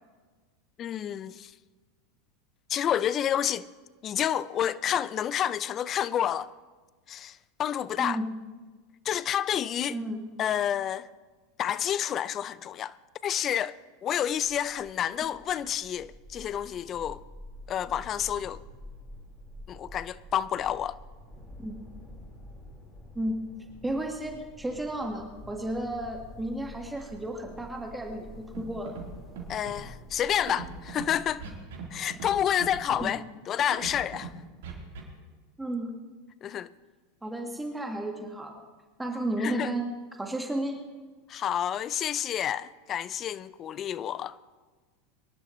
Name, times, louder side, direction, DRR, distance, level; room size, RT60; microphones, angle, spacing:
voice 1, 0.8-1.5 2.7-3.7 4.0-6.5 7.1-8.2 9.0-10.0 10.4-11.1 11.6-12.9 13.2-17.2 17.7-18.6 19.7-21.0 29.5-31.4 31.9-34.3 36.4-36.7 39.4-39.7 41.3-44.4, left 10 dB, 40° left, 0.5 m, -29 dB
voice 2, 8.0-8.3 9.9-10.2 21.6-21.8 23.2-23.3 23.8-28.9 33.0-33.1 35.6-36.0 37.2-38.6 39.0-39.9 40.2-40.8, right 1 dB, 10° right, 1.7 m, -33 dB
sound 1, 14.2-31.6, left 1 dB, 20° left, 4.4 m, -48 dB
Scratching (performance technique), 28.5-28.6 28.9-29.1 29.3-29.8 30.5-31.0 31.4-31.8 32.1-32.3 32.6-33.0 33.7-34.3 34.6-35.0, right 6 dB, 70° right, 3.7 m, -39 dB
24.0 x 11.5 x 3.2 m
hypercardioid pair, 95°, 0 cm